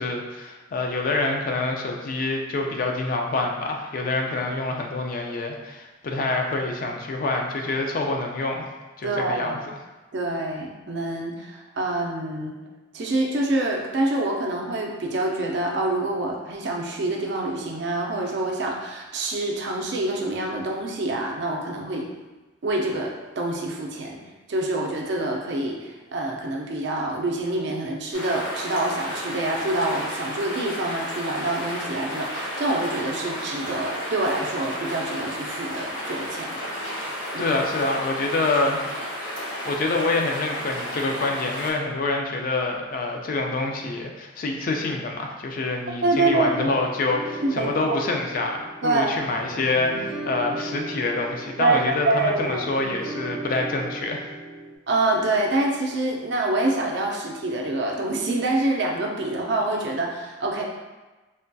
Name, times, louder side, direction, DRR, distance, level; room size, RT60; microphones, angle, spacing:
voice 1, 0.0-8.7 9.0-9.6 37.4-39.1 39.6-54.2, left 2 dB, 45° left, 2 dB, 0.3 m, -26 dB
voice 2, 9.0-9.6 10.1-12.6 12.9-22.1 22.6-24.2 24.5-37.0 37.3-37.6 46.0-46.7 47.4-48.0 48.8-49.2 51.6-52.7 54.9-60.6, right 2 dB, 55° right, 0 dB, 0.4 m, -26 dB
sound 1, 28.1-41.7, equal, 65° left, 0.8 m, -32 dB
sound 2, 47.1-54.8, right 2 dB, ahead, 1.0 m, -37 dB
3.2 x 2.6 x 2.2 m, 1.2 s
head